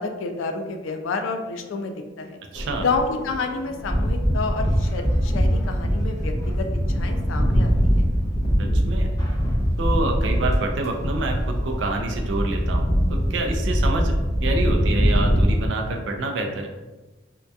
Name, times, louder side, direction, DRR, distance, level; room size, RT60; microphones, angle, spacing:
voice 1, 0.0-2.4 2.8-6.7 6.9-8.1, left 4 dB, 80° left, 5 dB, 0.3 m, -29 dB
voice 2, 2.5-2.9 8.6-9.1 9.8-14.1 14.4-16.7, right 2 dB, 65° right, 3 dB, 0.4 m, -27 dB
sound 1, 2.6-15.7, equal, 15° left, 0.5 m, -22 dB
2.7 x 2.2 x 2.2 m, 1.2 s
head